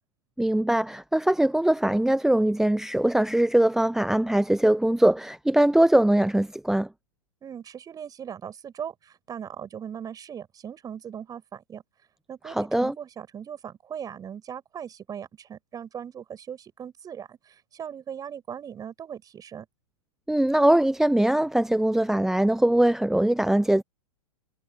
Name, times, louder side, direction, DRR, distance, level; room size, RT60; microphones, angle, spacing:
voice 1, 0.4-6.9 12.5-12.9 20.3-23.8, right 1 dB, ahead, 0.9 m, -22 dB
voice 2, 7.4-11.8 12.3-19.7, right 8 dB, 20° right, 7.0 m, -39 dB
figure-of-eight pair, 105°, 19 cm